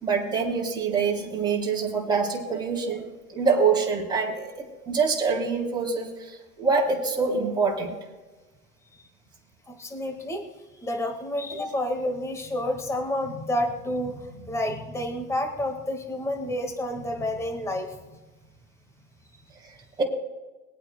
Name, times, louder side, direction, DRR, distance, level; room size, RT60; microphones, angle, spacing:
voice 1, 0.0-3.0 3.3-8.0 20.0-20.1, right 5 dB, 10° right, -3 dB, 3.3 m, -25 dB
voice 2, 9.7-10.4 10.8-17.9, left 1 dB, 5° left, 4 dB, 1.8 m, -29 dB
23.5 x 8.8 x 2.3 m, 1.2 s
hypercardioid pair, 125°, 45 cm